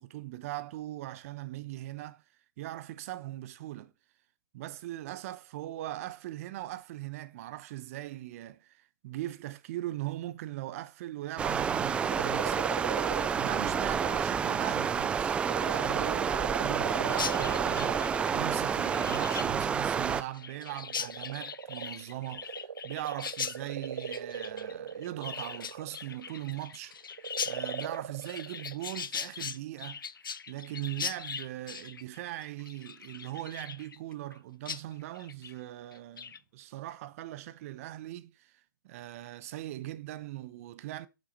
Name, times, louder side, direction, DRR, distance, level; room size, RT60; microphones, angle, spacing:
voice 1, 0.0-2.2 2.6-3.9 4.5-12.7 13.3-27.0 27.4-30.0 30.5-41.1, right 15 dB, 40° right, 1.0 m, -40 dB
Stream, 11.4-20.2, right 6 dB, 10° right, 0.4 m, -29 dB
sound 1, 12.1-14.2 14.7-19.6 20.4-26.5 27.1-28.7, right 6 dB, 80° right, 0.6 m, -39 dB
Chirp tweet, 17.1-34.4 34.7-34.8 35.1-35.5 35.9-36.4, left 7 dB, 80° left, 0.8 m, -40 dB
11.5 x 6.1 x 4.2 m
hypercardioid pair, 135°, 11 cm